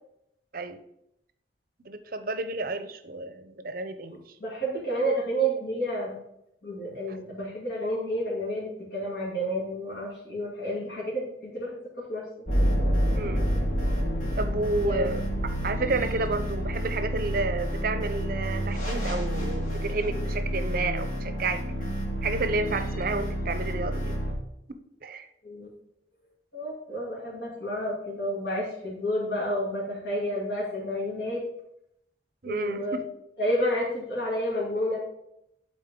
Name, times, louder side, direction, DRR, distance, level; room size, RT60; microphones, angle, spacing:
voice 1, 1.8-4.2 13.2-13.4 14.4-15.2 15.6-21.6 22.2-24.2 25.0-25.3 32.4-33.0, right 3 dB, 50° right, 10 dB, 0.6 m, -31 dB
voice 2, 4.4-6.2 6.6-12.2 14.8-15.1 21.8-21.9 25.4-25.7 26.5-31.4 32.4-33.0 33.4-35.0, equal, 60° left, -7 dB, 2.4 m, -30 dB
sound 1, 12.5-24.3, equal, 45° left, 1.8 m, -29 dB
12.0 x 4.1 x 3.7 m, 0.79 s
head